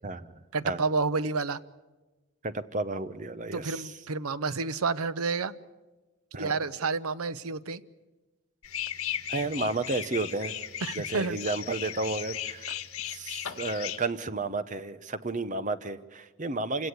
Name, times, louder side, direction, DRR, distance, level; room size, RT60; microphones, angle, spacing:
voice 1, 0.5-1.6 3.5-5.5 6.4-7.8 10.8-11.4, right 4 dB, 85° right, 15 dB, 0.8 m, -30 dB
voice 2, 2.4-3.9 6.3-6.6 9.3-10.6 10.9-12.7 13.0-16.9, right 3 dB, 35° right, 12 dB, 0.9 m, -32 dB
sound 1, 8.6-14.0, left 10 dB, 85° left, 1.7 m, -36 dB
27.0 x 17.5 x 8.2 m, 1.2 s
head